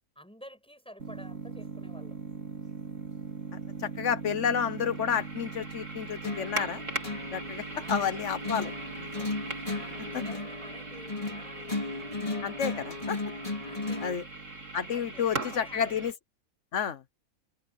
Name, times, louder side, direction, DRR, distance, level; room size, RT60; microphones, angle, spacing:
voice 1, 0.2-2.2 7.7-8.0 9.7-11.8 13.7-14.1 14.9-16.1, equal, 5° left, 7.7 m, -50 dB
sound 1, 1.0-16.1, right 3 dB, 55° right, 3.6 m, -40 dB
voice 2, 3.8-6.8 7.3-7.6 7.9-8.7 9.0-9.1 12.4-13.2 14.0-14.2 14.7-16.1 16.7-17.0, left 7 dB, 55° left, 1.3 m, -30 dB
sound 2, 6.2-14.2, left 3 dB, 20° left, 4.0 m, -36 dB
omnidirectional pair, 1.5 m